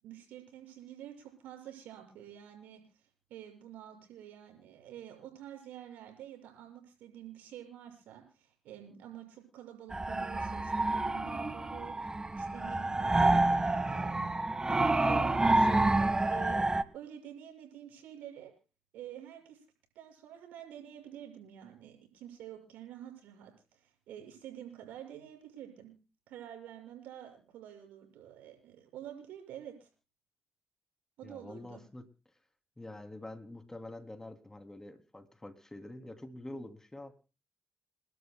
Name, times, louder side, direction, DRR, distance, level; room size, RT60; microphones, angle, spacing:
voice 1, 0.0-2.8 3.3-18.5 18.9-19.6 19.9-25.9 26.3-29.9 31.2-31.8, right 11 dB, 85° right, 3 dB, 6.6 m, -49 dB
sound 1, 9.9-16.8, right 2 dB, 25° right, 1.5 m, -28 dB
voice 2, 31.2-32.0 32.8-37.1, left 1 dB, 20° left, 7 dB, 2.9 m, -46 dB
30.0 x 12.0 x 2.2 m, 0.33 s
supercardioid pair, 50°, 3 cm